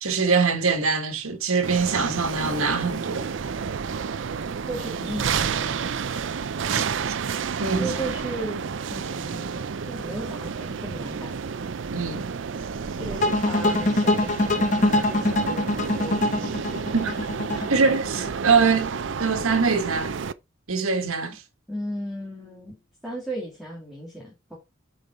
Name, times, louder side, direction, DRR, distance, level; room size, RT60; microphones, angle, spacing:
voice 1, 0.0-3.3 6.7-6.8 7.6-7.9 11.9-12.3 16.9-17.2 17.7-18.9 19.2-20.1 20.7-21.4, right 4 dB, 90° right, 1.7 m, -23 dB
sound 1, 1.6-20.3, right 6 dB, 60° right, 0.5 m, -30 dB
voice 2, 4.7-5.8 7.8-8.6 8.9-11.4 13.0-16.3 17.5-17.7 21.7-22.8 23.0-24.6, right 1 dB, ahead, 2.6 m, -36 dB
sound 2, 13.2-18.3, left 1 dB, 35° left, 1.2 m, -23 dB
8.6 x 5.4 x 4.4 m
head